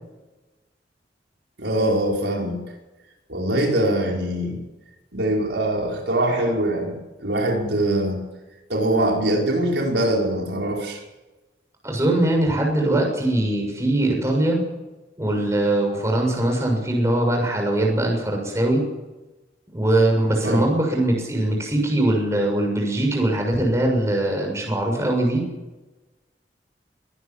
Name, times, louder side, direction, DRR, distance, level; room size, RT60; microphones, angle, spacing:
voice 1, 1.6-2.6 3.3-4.6 5.1-8.2 8.7-11.0 20.4-20.7, right 1 dB, 75° right, 0 dB, 5.3 m, -23 dB
voice 2, 11.8-14.6 15.2-18.8 19.7-25.4, right 1 dB, 15° right, 1 dB, 6.7 m, -21 dB
23.0 x 19.0 x 7.4 m, 1.1 s
head